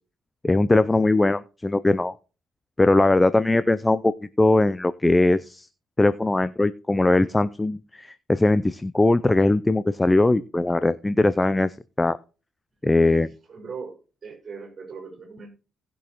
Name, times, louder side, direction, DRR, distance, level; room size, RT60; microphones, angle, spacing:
voice 1, 0.4-2.1 2.8-4.1 4.4-5.7 6.0-12.2 12.8-13.3, left 2 dB, 15° left, 13 dB, 0.4 m, -20 dB
voice 2, 13.5-15.5, right 5 dB, 40° right, 2 dB, 4.8 m, -39 dB
18.5 x 6.2 x 3.0 m, 0.34 s
cardioid pair, 90°, 0 cm